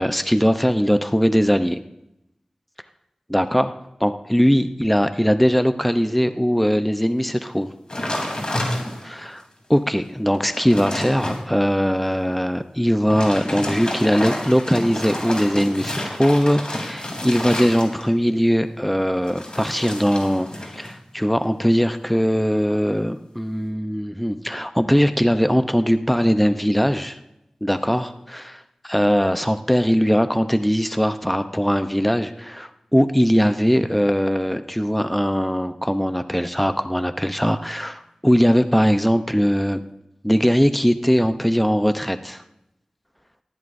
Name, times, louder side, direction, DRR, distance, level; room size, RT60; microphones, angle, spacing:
voice 1, 0.0-1.8 3.3-3.7 4.0-7.7 9.0-9.4 9.7-20.5 20.8-27.2 27.6-28.6 28.9-39.8 40.2-42.4, equal, 5° left, 9 dB, 0.7 m, -20 dB
sound 1, 7.9-9.2 9.7-9.8 10.3-11.4 12.9-18.2 19.2-20.9 21.2-21.6, left 1 dB, 45° left, 3.5 m, -29 dB
19.0 x 14.5 x 2.7 m, 0.86 s
wide cardioid pair, 50°, 2 cm